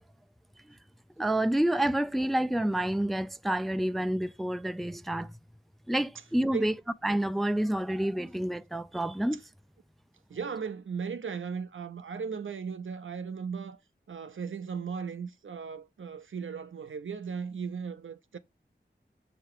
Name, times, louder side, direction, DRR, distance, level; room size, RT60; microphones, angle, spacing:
voice 1, 1.2-5.3 5.9-6.7 7.0-9.4, right 1 dB, ahead, 0.4 m, -28 dB
voice 2, 10.3-13.8 14.1-18.4, right 6 dB, 85° right, 0.6 m, -37 dB
6.8 x 2.9 x 4.8 m
wide cardioid pair, 75°, 20 cm